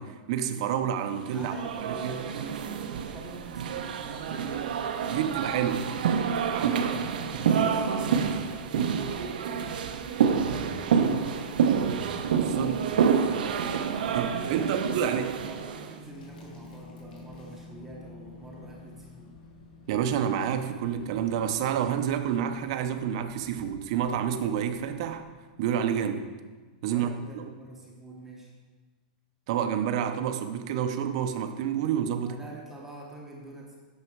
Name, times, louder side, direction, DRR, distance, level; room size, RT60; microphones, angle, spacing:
voice 1, 0.0-1.5 1.8-2.2 5.1-5.9 6.5-6.7 12.3-12.8 14.1-15.3 19.9-25.2 25.6-26.3 26.8-27.1 27.3-27.4 29.5-32.4, right 9 dB, 40° right, 8 dB, 0.6 m, -29 dB
sound 1, 1.2-15.9, right 7 dB, 80° right, 0.8 m, -28 dB
voice 2, 1.3-4.6 6.3-8.3 8.6-11.7 14.5-19.4 26.9-28.5 32.2-33.8, right 2 dB, 5° right, -2 dB, 0.8 m, -46 dB
sound 2, 16.0-25.2, left 2 dB, 75° left, 2.6 m, -50 dB
9.6 x 6.2 x 4.6 m, 1.3 s
supercardioid pair, 175°, 5 cm